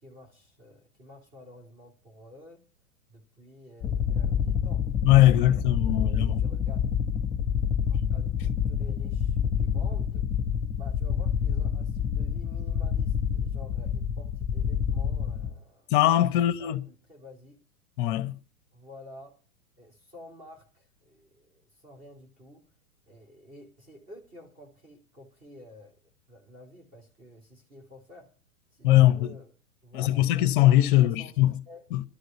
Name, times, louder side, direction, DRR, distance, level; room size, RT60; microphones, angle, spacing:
voice 1, 0.0-2.6 3.1-4.8 5.3-6.8 7.9-10.3 10.7-15.9 16.4-17.6 18.7-19.3 19.8-22.6 23.1-25.9 26.3-28.3 28.7-29.5 29.8-30.2 30.9-31.8, left 1 dB, 20° right, 3.4 m, -50 dB
sound 1, 3.8-15.5, left 8 dB, 15° left, 1.5 m, -27 dB
voice 2, 5.0-6.4 15.9-16.8 18.0-18.4 28.8-29.3 29.9-31.5 31.9-32.0, left 14 dB, 35° left, 0.9 m, -21 dB
13.0 x 6.5 x 9.7 m
figure-of-eight pair, 105°, 45 cm